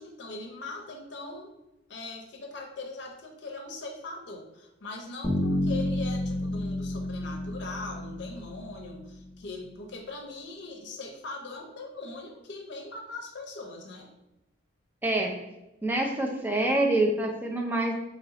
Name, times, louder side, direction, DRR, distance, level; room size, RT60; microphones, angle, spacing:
voice 1, 0.0-1.5 1.9-14.1, left 3 dB, 60° left, 2 dB, 0.6 m, -41 dB
Bass guitar, 5.2-9.3, left 1 dB, 25° left, 0.7 m, -30 dB
voice 2, 15.0-15.3 15.8-17.9, right 1 dB, 10° right, 1 dB, 0.4 m, -26 dB
3.1 x 2.6 x 3.9 m, 0.95 s
head